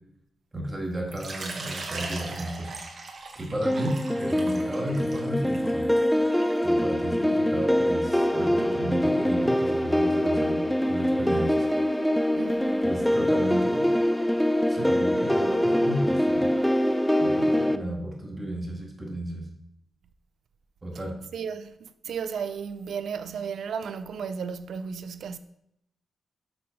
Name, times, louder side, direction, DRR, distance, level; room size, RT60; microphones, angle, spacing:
voice 1, 0.5-2.7 3.3-5.9 6.6-10.6 10.9-11.7 12.0-12.1 12.8-13.9 14.7-16.5 17.2-19.5 20.8-21.1, right 1 dB, 20° right, 1.5 m, -33 dB
Water / Liquid, 1.1-6.6, right 3 dB, 50° right, 1.0 m, -39 dB
sound 1, 3.6-17.8, equal, 5° left, 0.3 m, -24 dB
voice 2, 12.3-12.9 21.3-25.4, right 6 dB, 75° right, 0.4 m, -34 dB
6.8 x 3.7 x 5.1 m
cardioid pair, 110°, 0 cm